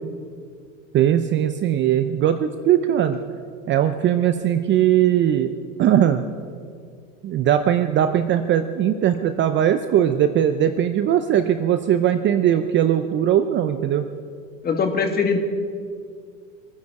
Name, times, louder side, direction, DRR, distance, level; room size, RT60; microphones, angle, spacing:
voice 1, 0.9-3.2 3.7-5.5 5.8-6.2 7.2-14.0, right 10 dB, 30° right, 9 dB, 0.6 m, -19 dB
voice 2, 14.6-15.4, left 5 dB, 25° left, 5 dB, 1.8 m, -21 dB
24.5 x 9.7 x 4.9 m, 2.2 s
supercardioid pair, 120°, 40 cm